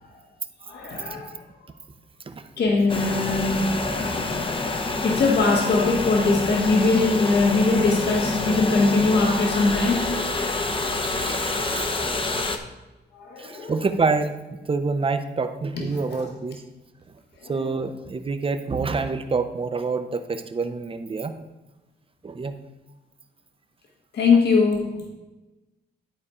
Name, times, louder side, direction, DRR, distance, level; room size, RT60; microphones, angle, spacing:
voice 1, 0.6-1.4 2.6-3.8 4.1-4.4 5.0-10.1 13.1-13.7 15.7-16.3 17.4-17.8 24.1-25.1, left 3 dB, 65° left, 0 dB, 1.6 m, -22 dB
sound 1, 2.9-12.6, left 2 dB, 30° left, 0.9 m, -27 dB
voice 2, 10.8-12.1 13.4-14.4 14.7-16.6 17.5-21.3 22.2-22.5, right 4 dB, 30° right, 9 dB, 0.7 m, -27 dB
11.0 x 4.2 x 4.9 m, 1.1 s
cardioid pair, 95°, 19 cm